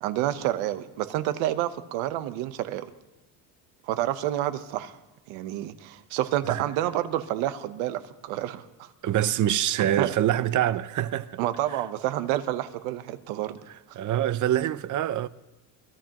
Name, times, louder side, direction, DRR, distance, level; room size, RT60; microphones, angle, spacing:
voice 1, 0.0-2.9 3.8-4.9 5.3-8.9 9.8-10.1 11.4-13.6, right 13 dB, 85° right, 1.1 m, -29 dB
voice 2, 9.0-11.4 13.7-15.3, right 12 dB, 40° right, 0.6 m, -25 dB
23.0 x 14.5 x 3.0 m
cardioid pair, 115°, 45 cm